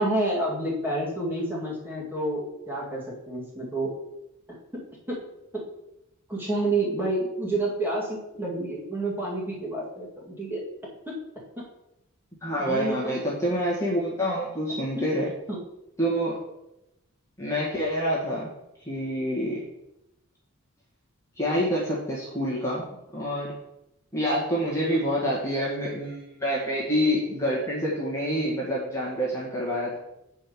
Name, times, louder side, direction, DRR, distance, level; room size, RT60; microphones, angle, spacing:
voice 1, 0.0-3.9 5.1-5.2 6.3-10.6 11.1-11.2 12.6-13.2 15.0-15.1 15.5-15.6, right 2 dB, 10° right, -5 dB, 2.1 m, -29 dB
voice 2, 12.4-15.3 16.0-16.4 17.4-18.5 18.8-19.6 21.4-22.9 23.1-23.5 24.1-30.0, equal, 15° left, -7 dB, 1.7 m, -27 dB
7.7 x 4.6 x 5.3 m, 0.87 s
head